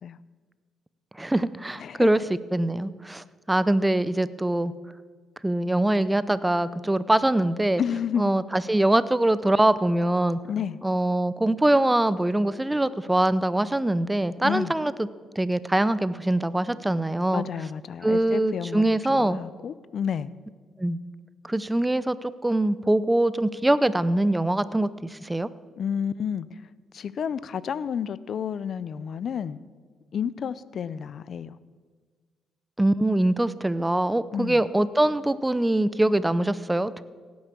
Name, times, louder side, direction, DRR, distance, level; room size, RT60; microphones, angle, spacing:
voice 1, 1.2-2.2 2.5-4.7 5.4-7.8 8.2-10.4 10.8-15.1 15.4-17.5 18.0-19.4 20.8-21.0 21.4-25.5 32.8-37.0, right 1 dB, 10° right, 16 dB, 0.6 m, -23 dB
voice 2, 1.8-2.1 7.8-8.3 10.5-10.8 14.4-14.7 17.3-20.3 25.8-26.6 26.9-29.6 30.1-31.5 34.3-34.6, left 8 dB, 55° left, 18 dB, 0.6 m, -30 dB
16.5 x 9.5 x 6.9 m, 1.5 s
cardioid pair, 90°, 0 cm